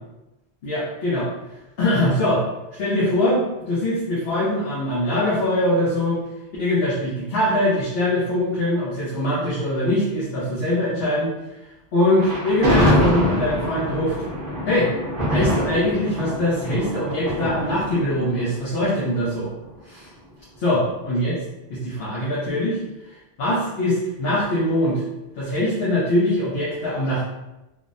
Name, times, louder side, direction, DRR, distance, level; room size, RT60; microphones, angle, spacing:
voice 1, 0.6-1.3 1.8-2.4 2.8-6.2 6.6-11.3 11.9-14.2 14.7-14.9 15.3-19.5 19.9-20.1 20.6-21.3 21.7-22.8 23.4-25.0 25.4-27.2, left 1 dB, 70° left, -7 dB, 0.9 m, -22 dB
Thunder, 12.2-19.4, equal, 55° right, 0.9 m, -24 dB
3.2 x 2.0 x 2.5 m, 0.97 s
omnidirectional pair, 1.1 m